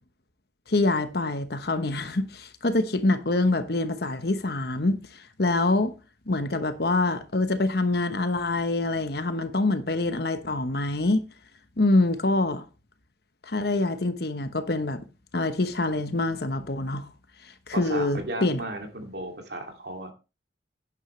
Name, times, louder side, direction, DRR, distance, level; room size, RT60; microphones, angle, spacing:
voice 1, 0.7-5.9 6.3-11.2 11.8-12.6 13.5-15.0 15.3-17.1 17.7-18.6, left 2 dB, 60° left, 1.1 m, -25 dB
voice 2, 17.7-20.1, right 1 dB, 65° right, 2.7 m, -35 dB
11.0 x 9.8 x 3.3 m
head